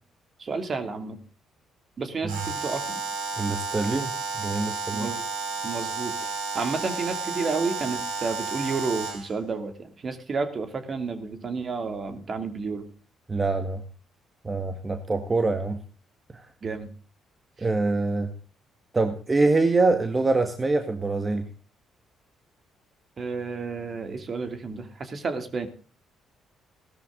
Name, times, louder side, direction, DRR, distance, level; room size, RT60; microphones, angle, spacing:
voice 1, 0.4-1.2 2.0-3.0 4.9-5.2 5.6-12.9 16.6-16.9 23.2-25.7, right 4 dB, 45° right, 7 dB, 2.8 m, -31 dB
Alarm, 2.3-9.3, right 4 dB, 85° right, 4.5 m, -32 dB
voice 2, 3.4-4.1 4.4-5.1 13.3-13.8 14.4-15.8 16.3-16.5 17.6-18.3 18.9-21.5, right 3 dB, 30° right, 6 dB, 1.9 m, -24 dB
16.5 x 13.0 x 3.9 m, 0.38 s
hypercardioid pair, 50°, 0 cm